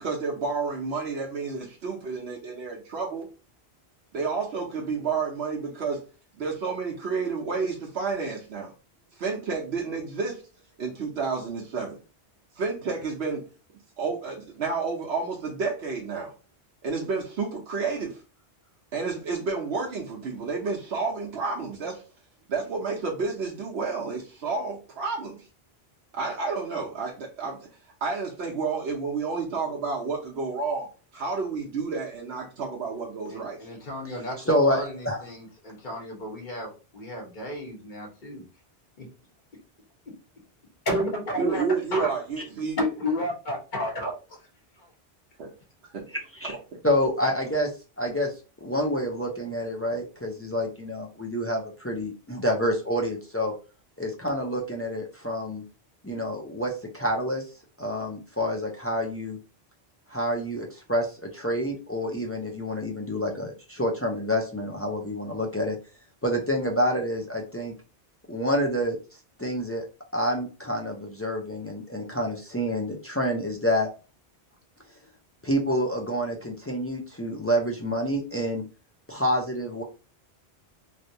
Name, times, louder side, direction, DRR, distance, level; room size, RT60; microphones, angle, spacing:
voice 1, 0.0-3.3 4.1-6.0 6.4-8.7 9.2-10.4 10.8-12.0 12.5-13.5 14.0-16.3 16.8-18.2 18.9-22.0 22.5-25.5 26.1-27.6 28.0-30.9 31.1-33.6 41.4-42.8 45.4-45.5 45.9-46.1 46.7-46.8, right 4 dB, 85° right, -2 dB, 1.0 m, -30 dB
voice 2, 33.3-34.3 34.7-38.4 39.0-39.1 40.8-42.1 42.8-44.1, left 1 dB, 50° left, -1 dB, 1.2 m, -32 dB
voice 3, 34.1-35.2 46.3-46.6 46.8-47.7 48.0-48.3 48.6-53.5 54.0-55.6 56.0-57.4 57.8-59.4 60.1-65.8 66.2-67.7 68.3-69.0 69.4-69.9 70.1-73.9 75.4-78.6 79.1-79.8, equal, 20° left, 0 dB, 0.3 m, -28 dB
3.2 x 2.7 x 2.6 m, 0.34 s
omnidirectional pair, 1.1 m